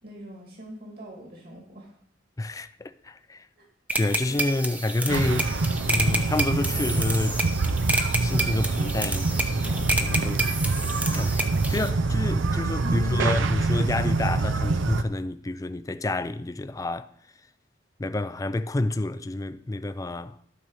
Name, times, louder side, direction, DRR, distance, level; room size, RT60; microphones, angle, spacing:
voice 1, 0.0-1.9 3.6-3.7 4.3-4.4 12.8-13.3, equal, 55° right, 2.4 m, -41 dB
voice 2, 2.4-3.4 3.9-5.5 5.9-7.4 8.2-10.5 11.1-17.1 18.0-20.4, left 2 dB, 20° left, 0.4 m, -29 dB
sound 1, 3.9-11.9, right 2 dB, 10° right, 0.7 m, -29 dB
sound 2, 5.1-15.0, right 3 dB, 85° right, 0.6 m, -26 dB
12.5 x 4.2 x 6.3 m
head